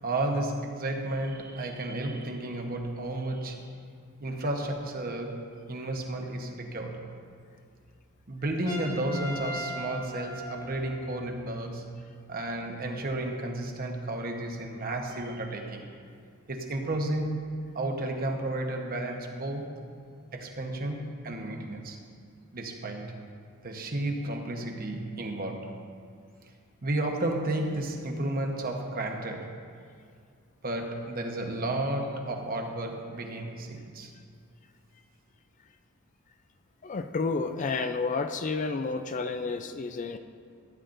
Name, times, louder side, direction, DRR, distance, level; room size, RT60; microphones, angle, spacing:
voice 1, 0.0-3.7 4.2-7.1 8.3-12.0 12.3-15.9 16.5-19.8 20.3-22.0 22.5-23.2 23.6-25.9 26.8-29.6 30.6-34.1, right 1 dB, 45° right, 3 dB, 1.0 m, -32 dB
Trumpet, 8.7-11.3, right 1 dB, 15° left, 1.3 m, -39 dB
voice 2, 36.8-40.2, left 4 dB, 35° left, 7 dB, 0.4 m, -30 dB
15.5 x 10.0 x 2.6 m, 2.3 s
head